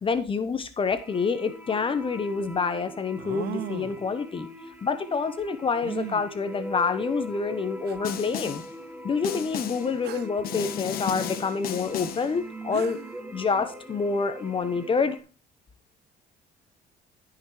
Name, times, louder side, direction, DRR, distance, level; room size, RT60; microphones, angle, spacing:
voice 1, 0.0-4.5 4.8-8.6 9.0-13.0 13.3-15.2, left 5 dB, 30° left, 11 dB, 1.0 m, -27 dB
sound 1, 0.9-15.2, equal, 10° right, 1.4 m, -42 dB
sound 2, 1.7-1.8 3.2-4.1 5.8-6.2 7.2-7.3 7.9-8.0 10.0-10.4 12.4-12.5 12.7-13.2, right 12 dB, 75° right, 0.8 m, -36 dB
Snare drum, 8.0-8.7 9.2-9.9 10.4-12.3, left 9 dB, 60° left, 1.3 m, -34 dB
16.5 x 5.9 x 3.2 m, 0.32 s
cardioid pair, 110°, 17 cm